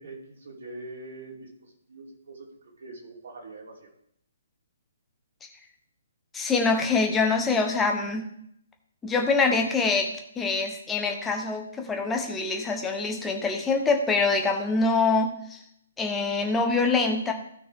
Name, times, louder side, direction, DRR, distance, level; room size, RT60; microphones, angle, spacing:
voice 1, 0.0-3.9, right 2 dB, 55° right, -2 dB, 3.3 m, -43 dB
voice 2, 6.3-8.3 9.0-10.1 10.4-15.6 16.0-17.3, left 4 dB, 10° left, 3 dB, 1.3 m, -25 dB
16.0 x 5.8 x 3.7 m, 0.71 s
figure-of-eight pair, 130°, 0 cm